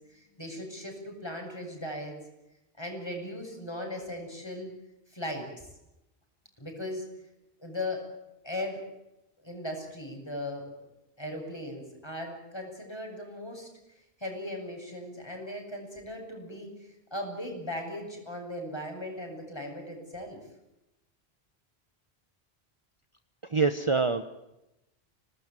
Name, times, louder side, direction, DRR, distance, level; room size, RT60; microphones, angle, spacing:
voice 1, 0.1-2.2 2.8-4.7 5.1-5.7 6.6-7.1 7.6-8.1 8.4-8.8 9.4-10.7 11.2-13.7 14.2-20.4, left 1 dB, 25° left, 2 dB, 7.7 m, -38 dB
voice 2, 23.5-24.2, right 4 dB, 30° right, 9 dB, 1.1 m, -25 dB
26.0 x 19.5 x 9.2 m, 0.92 s
omnidirectional pair, 1.1 m